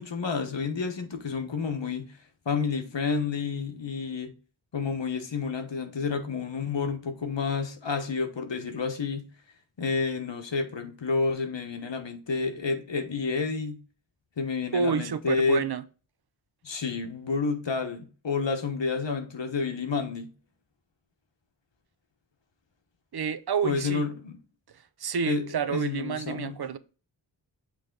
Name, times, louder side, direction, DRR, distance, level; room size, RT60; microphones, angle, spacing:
voice 1, 0.0-2.2 2.4-4.3 4.7-9.3 9.8-13.8 14.4-15.6 16.6-20.3 23.6-24.4 25.2-26.6, left 4 dB, 65° left, 1.2 m, -30 dB
voice 2, 14.7-15.8 23.1-24.1 25.0-26.8, right 6 dB, 55° right, 0.5 m, -29 dB
7.6 x 3.3 x 3.8 m
wide cardioid pair, 75°, 46 cm